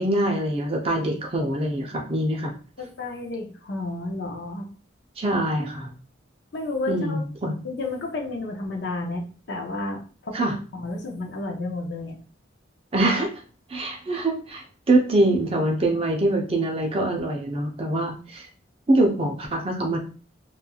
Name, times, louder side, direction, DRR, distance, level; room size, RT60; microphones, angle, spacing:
voice 1, 0.0-2.5 5.2-5.9 6.9-7.5 10.3-10.5 12.9-13.3 13.7-18.5 18.9-20.0, right 1 dB, 30° right, 2 dB, 0.5 m, -24 dB
voice 2, 2.8-4.7 6.5-7.2 7.6-12.2, left 2 dB, 55° left, 1 dB, 0.6 m, -31 dB
2.9 x 2.4 x 2.3 m, 0.38 s
head